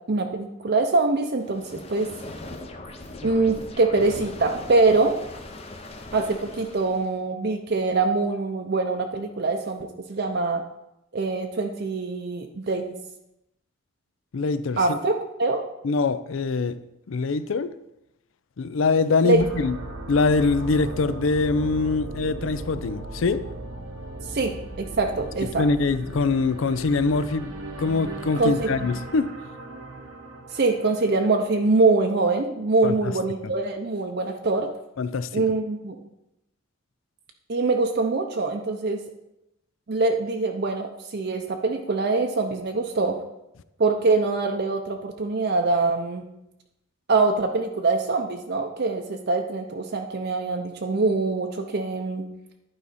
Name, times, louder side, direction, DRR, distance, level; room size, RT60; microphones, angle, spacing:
voice 1, 0.1-2.1 3.2-5.2 6.1-10.6 11.1-13.0 14.8-15.1 15.4-15.6 19.2-19.4 24.3-25.6 28.3-28.7 30.5-34.7 35.3-36.0 37.5-39.0 39.9-43.2 43.8-46.3 47.1-52.2, right 3 dB, 50° right, 3 dB, 0.6 m, -24 dB
sound 1, 1.4-7.2, left 2 dB, 30° left, 0.7 m, -40 dB
voice 2, 14.3-15.0 15.8-16.8 17.1-17.7 18.6-19.8 20.1-23.4 25.5-29.3 32.8-33.1 35.0-35.4, left 4 dB, 70° left, 14 dB, 0.4 m, -24 dB
sound 2, 19.3-31.3, right 1 dB, 80° right, 1.1 m, -37 dB
11.0 x 4.8 x 4.2 m, 0.86 s
head